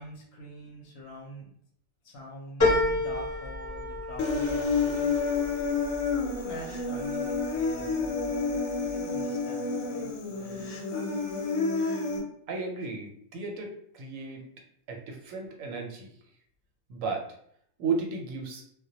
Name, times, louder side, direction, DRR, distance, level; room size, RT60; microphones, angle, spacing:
voice 1, 0.0-1.5 2.0-5.1 6.3-8.3 8.8-10.8, left 1 dB, 65° left, -1 dB, 0.8 m, -45 dB
sound 1, 2.6-7.4 7.8-8.5 8.9-9.0, left 2 dB, 15° left, 0.8 m, -31 dB
Human voice, 4.2-12.2, left 4 dB, 85° left, 1.0 m, -29 dB
voice 2, 12.5-14.4 14.9-16.1 16.9-17.4 17.8-18.6, right 4 dB, 85° right, 2 dB, 1.0 m, -34 dB
2.1 x 2.1 x 2.7 m, 0.67 s
omnidirectional pair, 1.3 m